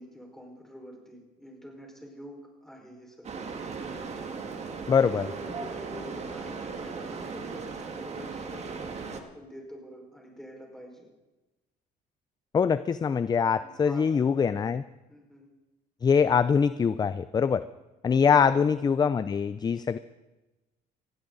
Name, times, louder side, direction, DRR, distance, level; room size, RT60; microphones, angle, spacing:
voice 1, 0.0-3.4 5.1-8.7 9.0-11.1 13.6-14.2 14.6-14.7 15.1-15.5 18.2-18.6, equal, 5° left, 0 dB, 4.9 m, -46 dB
sound 1, 3.2-9.2, right 5 dB, 40° right, 1.9 m, -37 dB
voice 2, 4.9-5.3 12.5-14.8 16.0-17.6 18.0-20.0, left 6 dB, 25° left, 14 dB, 0.4 m, -23 dB
19.0 x 15.5 x 4.0 m, 1.1 s
cardioid pair, 110°, 17 cm